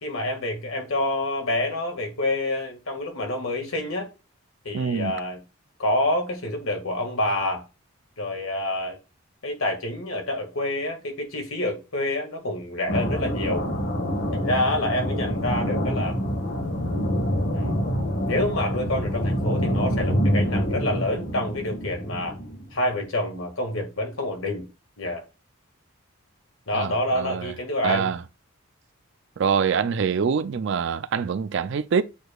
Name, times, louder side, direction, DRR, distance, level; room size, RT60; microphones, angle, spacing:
voice 1, 0.0-4.1 4.6-5.4 5.8-7.6 8.2-9.0 9.4-13.7 14.3-16.2 17.5-17.9 18.3-22.4 22.7-24.7 25.0-25.2 26.7-28.1, left 1 dB, 80° left, 2.0 m, -27 dB
voice 2, 4.7-5.1 26.7-27.5 27.8-28.2 29.4-32.0, right 6 dB, 60° right, 0.4 m, -25 dB
sound 1, 12.9-22.7, equal, 55° left, 1.7 m, -26 dB
8.2 x 4.8 x 2.4 m
head